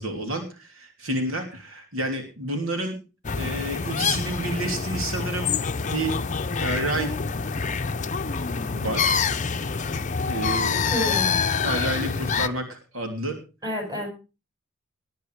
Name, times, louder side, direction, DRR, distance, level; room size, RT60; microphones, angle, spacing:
voice 1, 0.0-3.0 3.3-5.5 5.9-6.1 6.6-7.1 8.7-9.2 10.3-10.9 11.6-13.4, right 1 dB, 80° right, 4 dB, 3.1 m, -29 dB
sound 1, 3.2-12.5, left 5 dB, 35° left, 0.7 m, -26 dB
voice 2, 10.9-11.4 13.6-14.1, equal, 20° right, 4 dB, 7.2 m, -28 dB
19.5 x 9.3 x 4.8 m, 0.33 s
head